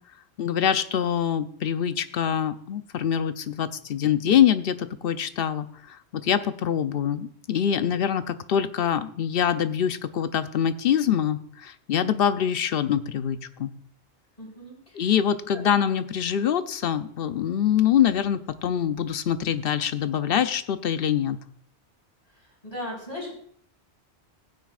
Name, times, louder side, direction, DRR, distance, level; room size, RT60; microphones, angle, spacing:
voice 1, 0.4-13.7 14.9-21.4, left 9 dB, 65° left, 12 dB, 0.8 m, -24 dB
voice 2, 14.4-15.1 15.5-15.6 22.3-23.3, left 1 dB, 35° left, -3 dB, 4.3 m, -38 dB
16.0 x 9.3 x 2.4 m, 0.62 s
omnidirectional pair, 1.1 m